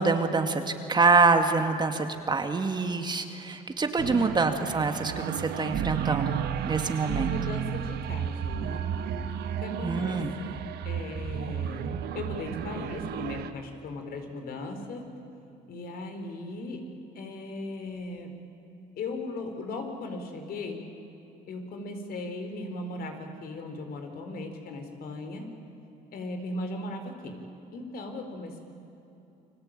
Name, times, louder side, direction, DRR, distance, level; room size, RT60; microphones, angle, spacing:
voice 1, 0.0-6.4 6.6-7.3 9.8-10.3, right 4 dB, 25° right, 6 dB, 2.1 m, -25 dB
voice 2, 4.0-4.4 7.0-9.0 9.6-10.5 10.8-15.1 15.7-16.8 17.1-18.3 19.0-20.8 21.5-25.5 26.1-27.4 27.7-28.6, left 2 dB, 65° left, 5 dB, 4.6 m, -37 dB
sound 1, 4.0-13.5, right 9 dB, 75° right, 1.4 m, -32 dB
30.0 x 22.5 x 9.0 m, 2.9 s
cardioid pair, 110°, 17 cm